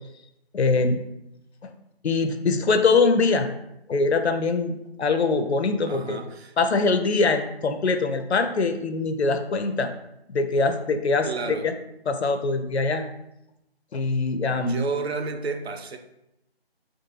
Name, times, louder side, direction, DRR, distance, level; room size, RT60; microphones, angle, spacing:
voice 1, 0.5-1.0 1.6-1.7 2.0-3.5 3.9-6.2 6.6-9.9 10.3-11.7 12.1-13.0 13.9-14.8, left 3 dB, 90° left, 0.5 m, -23 dB
voice 2, 5.9-6.5 11.2-11.7 14.6-16.0, right 4 dB, 75° right, 0.5 m, -31 dB
2.5 x 2.3 x 3.0 m
figure-of-eight pair, 165°, 32 cm